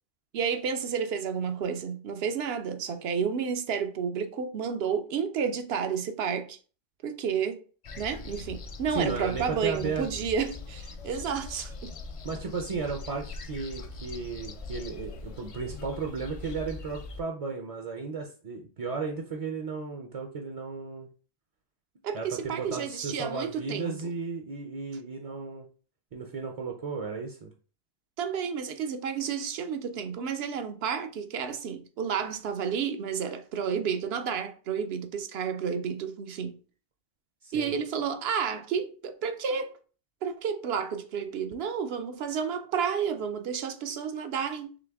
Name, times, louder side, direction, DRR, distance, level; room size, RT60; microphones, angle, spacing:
voice 1, 0.3-6.6 7.0-7.6 8.0-11.9 22.0-24.1 28.2-36.6 37.5-39.7 40.2-44.7, right 6 dB, 80° right, 0.8 m, -31 dB
sound 1, 7.8-17.2, left 3 dB, 55° left, 0.4 m, -41 dB
voice 2, 8.9-10.1 12.2-21.1 22.1-25.7 26.1-27.5 37.4-37.7, right 4 dB, 45° right, 0.5 m, -34 dB
3.9 x 3.3 x 3.4 m
omnidirectional pair, 1.1 m